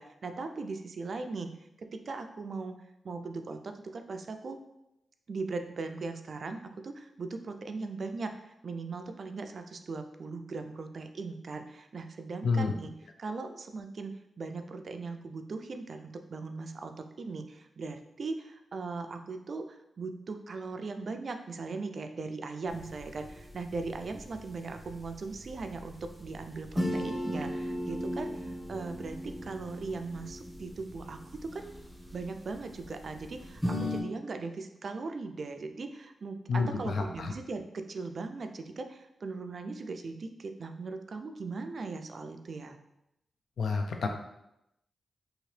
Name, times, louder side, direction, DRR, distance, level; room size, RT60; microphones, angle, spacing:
voice 1, 0.0-1.5 1.8-2.8 3.0-4.6 5.3-8.3 8.6-12.9 13.2-31.7 32.1-42.8, right 3 dB, 60° right, 7 dB, 0.3 m, -39 dB
sound 1, 22.7-34.0, equal, 5° left, 0.7 m, -38 dB
voice 2, 36.5-37.3 43.6-44.1, left 4 dB, 75° left, 4 dB, 0.4 m, -29 dB
2.8 x 2.8 x 3.1 m, 0.85 s
cardioid pair, 75°, 0 cm